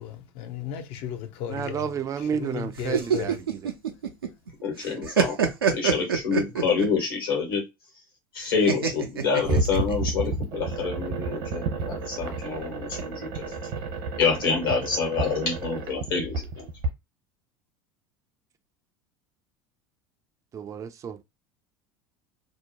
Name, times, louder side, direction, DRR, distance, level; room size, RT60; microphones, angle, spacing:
voice 1, 0.0-1.8 2.3-3.4, left 9 dB, 55° left, 0.6 m, -35 dB
voice 2, 1.5-3.7 20.5-21.2, right 7 dB, 25° right, 0.4 m, -31 dB
sound 1, 2.8-4.5 4.8-7.0 8.7-10.1, right 6 dB, 85° right, 0.5 m, -25 dB
voice 3, 4.6-5.4 5.7-7.6 8.3-13.5 14.2-16.7, left 5 dB, 75° left, 1.3 m, -27 dB
sound 2, 9.4-16.9, right 3 dB, 65° right, 0.9 m, -31 dB
2.7 x 2.1 x 2.7 m
hypercardioid pair, 75°, 12 cm